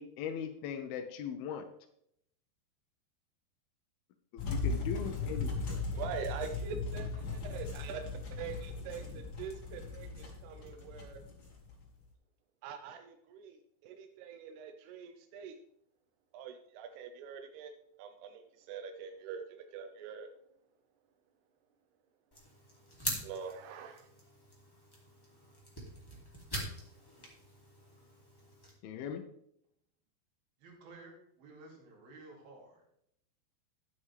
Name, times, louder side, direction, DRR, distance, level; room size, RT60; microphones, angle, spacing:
voice 1, 0.0-1.7 4.3-5.8 28.8-29.2, left 8 dB, 75° left, 5 dB, 2.5 m, -40 dB
sound 1, 4.4-12.0, left 4 dB, 40° left, 2.5 m, -38 dB
voice 2, 5.9-8.0 8.3-11.2 12.6-15.5 16.3-17.7 18.0-20.3 23.2-24.1, right 7 dB, 85° right, 5 dB, 2.8 m, -44 dB
sound 2, 22.3-28.7, equal, 10° left, 1.7 m, -44 dB
voice 3, 30.6-33.0, right 2 dB, 65° right, -1 dB, 4.4 m, -54 dB
13.0 x 8.3 x 3.4 m, 0.73 s
omnidirectional pair, 4.8 m